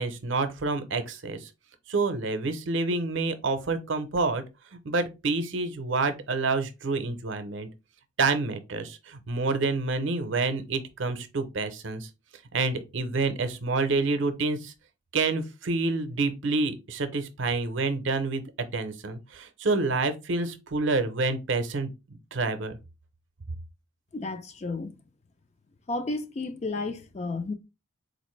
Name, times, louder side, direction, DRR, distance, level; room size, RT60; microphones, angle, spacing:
voice 1, 0.0-1.5 1.9-4.4 4.7-7.7 8.2-12.1 12.5-14.7 15.1-18.4 18.7-21.9 22.3-22.8, right 3 dB, 65° right, 0.6 m, -28 dB
voice 2, 24.1-25.0 25.9-27.5, left 3 dB, 30° left, 0.4 m, -32 dB
4.0 x 2.5 x 3.1 m
head